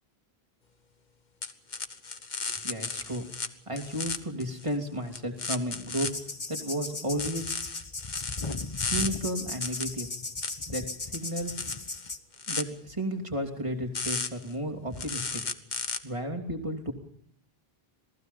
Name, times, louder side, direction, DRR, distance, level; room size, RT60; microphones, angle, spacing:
sound 1, 1.4-3.5 3.8-4.7 5.1-6.1 7.2-9.1 9.6-9.8 10.4-10.5 11.1-12.6 13.9-14.5 15.0-16.0, left 4 dB, 50° left, 1.3 m, -34 dB
voice 1, 2.6-3.3 3.7-6.1 6.5-7.5 8.9-10.1 10.7-11.7 12.5-15.4 16.0-16.9, right 1 dB, 30° right, 3 dB, 3.0 m, -33 dB
sound 2, 6.1-12.2, left 3 dB, 30° left, 1.1 m, -37 dB
27.5 x 19.0 x 5.4 m, 0.68 s
omnidirectional pair, 1.0 m